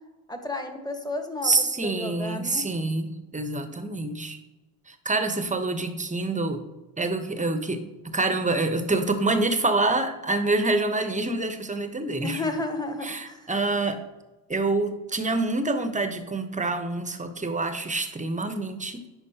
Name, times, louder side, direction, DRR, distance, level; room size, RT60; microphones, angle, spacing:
voice 1, 0.3-2.6 12.2-13.5, left 2 dB, 10° left, 5 dB, 1.3 m, -32 dB
voice 2, 1.4-4.4 4.9-6.6 7.0-12.4 13.0-14.0 14.5-19.0, right 2 dB, 15° right, 8 dB, 1.0 m, -26 dB
10.5 x 4.4 x 2.9 m, 1.1 s
supercardioid pair, 60°, 47 cm